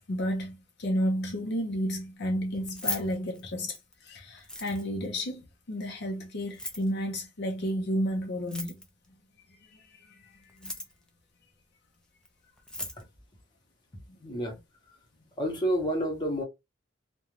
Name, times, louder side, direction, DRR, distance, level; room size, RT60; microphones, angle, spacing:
voice 1, 0.0-8.7 9.4-10.8, equal, 60° left, 0.6 m, -32 dB
Keys jangling, 2.5-3.9 4.4-5.1 6.4-6.9 8.4-9.1 10.4-11.1 12.2-12.3 12.6-13.0, left 2 dB, 5° left, 0.4 m, -37 dB
voice 2, 14.2-14.6 14.9-15.0 15.4-16.4, equal, 25° left, 0.8 m, -29 dB
2.4 x 2.2 x 3.1 m
head